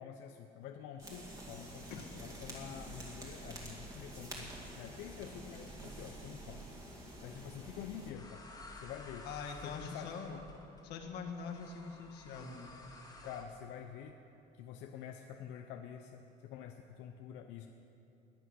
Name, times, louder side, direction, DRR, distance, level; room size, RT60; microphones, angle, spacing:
voice 1, 0.0-6.6 7.2-8.4 8.7-9.2 9.6-10.4 13.2-14.2 14.6-17.7, left 9 dB, 85° left, 4 dB, 0.7 m, -48 dB
sound 1, 1.0-8.1, right 1 dB, 20° right, 2.3 m, -48 dB
sound 2, 8.1-13.4, left 2 dB, 20° left, 1.8 m, -53 dB
voice 2, 9.2-10.4 10.8-12.8, left 5 dB, 65° left, 3 dB, 1.7 m, -44 dB
21.0 x 8.1 x 6.4 m, 2.9 s
cardioid pair, 165°, 18 cm